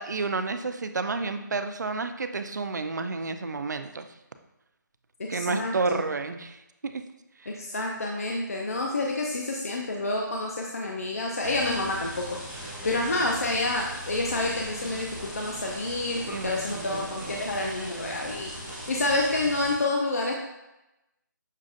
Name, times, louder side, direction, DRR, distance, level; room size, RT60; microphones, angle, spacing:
voice 1, 0.0-4.1 5.3-7.0 7.4-7.6 16.2-17.3 17.6-18.1, right 4 dB, 60° right, 8 dB, 0.4 m, -31 dB
voice 2, 5.2-6.0 7.5-18.5 18.9-20.3, left 2 dB, 45° left, 0 dB, 0.4 m, -29 dB
sound 1, 11.4-19.7, equal, 5° left, 0.6 m, -39 dB
6.3 x 2.4 x 2.5 m, 0.94 s
hypercardioid pair, 180°, 11 cm